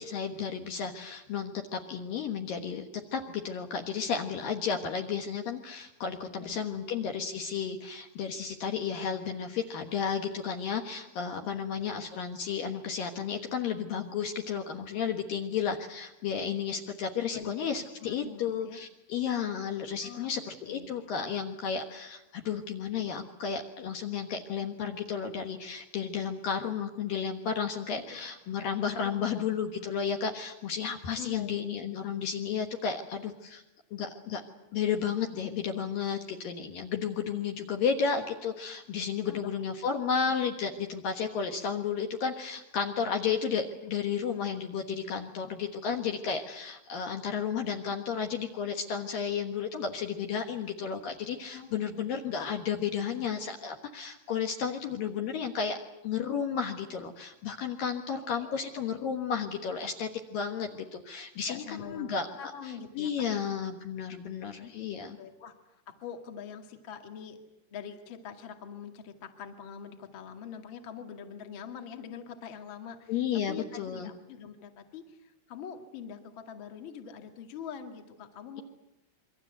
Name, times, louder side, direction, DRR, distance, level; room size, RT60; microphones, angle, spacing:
voice 1, 0.0-33.6 33.9-34.4 34.7-55.8 56.0-62.5 63.0-65.2 73.1-74.1, left 6 dB, 60° left, 4 dB, 2.6 m, -33 dB
voice 2, 6.4-6.8 11.4-11.9 17.3-17.7 18.0-18.8 20.0-20.3 20.7-21.1 28.1-28.2 29.0-29.4 31.2-31.7 39.2-39.5 51.5-51.8 58.2-58.6 58.9-59.0 61.5-63.4 64.6-64.7 65.2-65.5 65.9-67.4 67.7-73.2 73.5-78.6, left 7 dB, 40° left, 5 dB, 1.9 m, -44 dB
28.0 x 23.5 x 8.1 m, 0.89 s
omnidirectional pair, 5.4 m